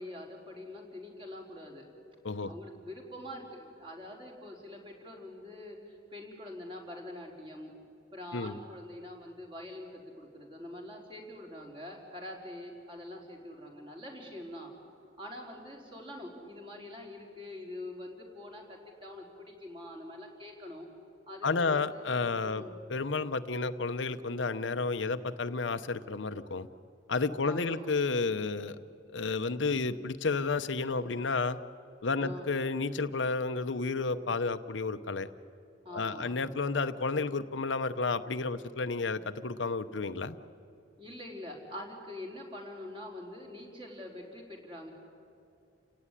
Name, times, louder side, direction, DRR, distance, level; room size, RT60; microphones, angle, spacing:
voice 1, 0.0-1.8 2.4-7.7 8.1-14.7 15.2-20.9 21.3-22.1 22.4-22.7 27.4-27.9 32.2-32.5 34.1-34.3 35.8-36.3 41.0-44.9, left 1 dB, 30° right, 0 dB, 4.2 m, -45 dB
voice 2, 21.4-22.6 22.9-26.7 27.1-28.8 29.1-31.6 32.0-35.3 35.9-40.4, left 4 dB, 75° left, 10 dB, 0.8 m, -31 dB
29.5 x 17.5 x 9.9 m, 2.7 s
head